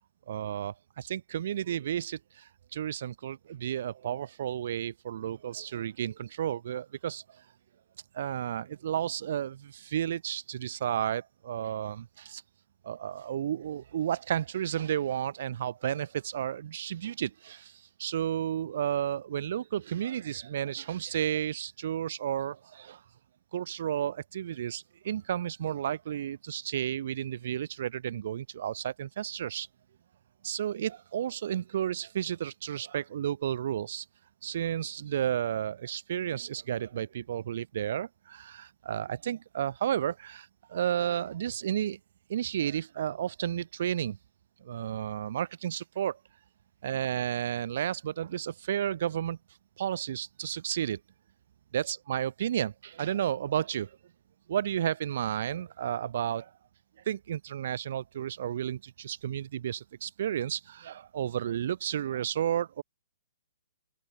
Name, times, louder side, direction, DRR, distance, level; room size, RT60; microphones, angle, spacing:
voice 1, 0.3-7.2 8.1-12.4 12.8-23.0 23.5-29.7 30.4-34.1 34.4-42.0 42.3-44.2 44.6-46.2 46.8-49.4 49.8-51.0 51.7-54.0 54.5-56.5 57.1-62.8, right 10 dB, 50° right, 0.5 m, -32 dB
open air
figure-of-eight pair, 120°, 0 cm